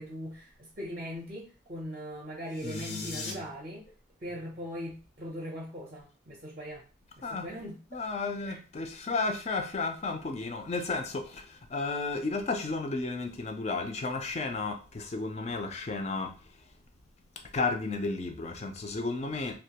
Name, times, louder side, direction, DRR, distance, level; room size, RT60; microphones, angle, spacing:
voice 1, 0.0-3.9 4.2-6.9 7.2-7.8 8.4-8.6, equal, 35° right, 0.5 m, -40 dB
sound 1, 2.5-3.3, left 4 dB, 75° left, 0.6 m, -40 dB
voice 2, 2.6-3.4 7.2-7.5 7.9-16.3 17.5-19.6, left 3 dB, 35° left, 0.4 m, -33 dB
2.3 x 2.2 x 2.8 m
head